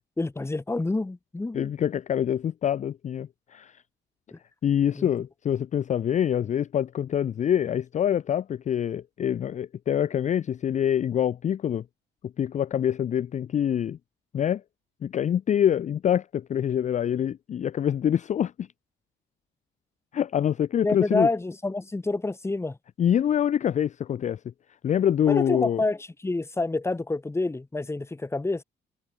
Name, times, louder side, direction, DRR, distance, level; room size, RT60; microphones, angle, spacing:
voice 1, 0.2-1.7 4.3-4.4 4.9-5.1 20.8-22.8 25.3-28.6, left 2 dB, 15° left, 0.9 m, -28 dB
voice 2, 1.5-3.8 4.6-11.8 12.4-14.0 14.3-14.6 15.0-18.7 20.1-21.3 23.0-24.4 24.8-25.8, left 9 dB, 40° left, 0.4 m, -25 dB
cardioid pair, 90°, 20 cm